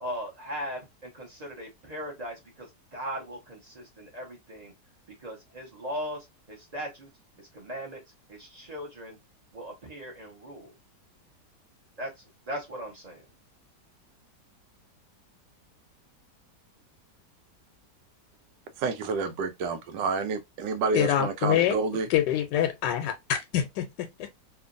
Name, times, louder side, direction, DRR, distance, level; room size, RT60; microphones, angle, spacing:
voice 1, 0.0-4.7 5.2-7.1 7.4-8.0 8.3-9.2 9.5-10.7 12.0-12.1 12.5-13.2, equal, 35° right, 0.7 m, -38 dB
voice 2, 18.8-22.1, right 4 dB, 85° right, 1.2 m, -29 dB
voice 3, 20.9-21.8 22.1-24.3, left 10 dB, 90° left, 1.2 m, -26 dB
2.9 x 2.4 x 2.5 m
omnidirectional pair, 1.8 m